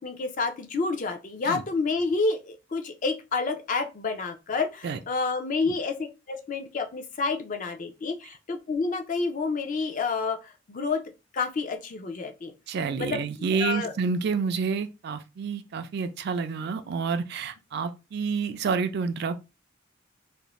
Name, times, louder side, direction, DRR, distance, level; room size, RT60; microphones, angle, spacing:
voice 1, 0.0-11.0 11.3-12.5 13.0-13.2 13.6-13.9, left 4 dB, 40° left, 0.4 m, -29 dB
voice 2, 12.7-19.4, right 5 dB, 55° right, 0.3 m, -29 dB
2.5 x 2.0 x 3.0 m
head